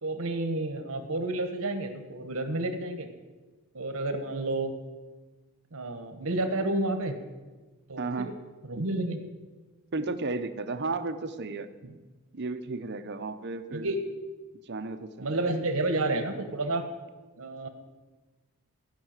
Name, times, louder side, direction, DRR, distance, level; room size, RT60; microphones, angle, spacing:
voice 1, 0.0-3.1 3.7-4.7 5.7-7.1 7.9-8.3 8.6-9.2 11.8-11.9 13.7-14.0 15.2-16.8 17.4-17.7, right 2 dB, 65° right, 6 dB, 1.2 m, -30 dB
voice 2, 8.0-8.3 9.9-11.7 12.3-14.0 14.7-15.4, right 3 dB, 50° right, 10 dB, 0.7 m, -33 dB
14.0 x 5.7 x 8.8 m, 1.3 s
head